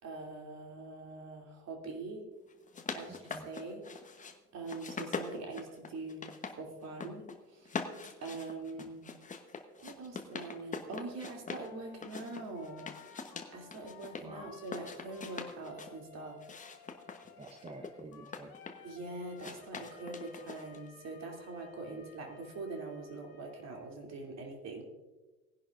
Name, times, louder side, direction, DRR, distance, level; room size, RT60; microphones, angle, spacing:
voice 1, 0.0-2.2 2.9-3.8 4.1-4.2 4.5-6.3 6.5-7.8 8.2-9.1 9.8-12.8 13.5-16.4 18.8-24.8, right 3 dB, 40° right, 1 dB, 3.1 m, -43 dB
sound 1, 2.5-4.3 4.7-6.6 6.8-7.4 7.7-11.7 12.0-14.2 14.6-15.9 16.4-18.9 19.4-20.9, left 5 dB, 20° left, 1.1 m, -43 dB
voice 2, 3.1-3.5 8.8-8.9 14.2-14.5 17.4-18.5, right 3 dB, 15° right, 5 dB, 0.8 m, -49 dB
Wind instrument woodwind instrument, 11.5-24.0, left 8 dB, 50° left, 1.8 m, -56 dB
19.0 x 11.0 x 2.6 m, 1.2 s
figure-of-eight pair, 75°, 42 cm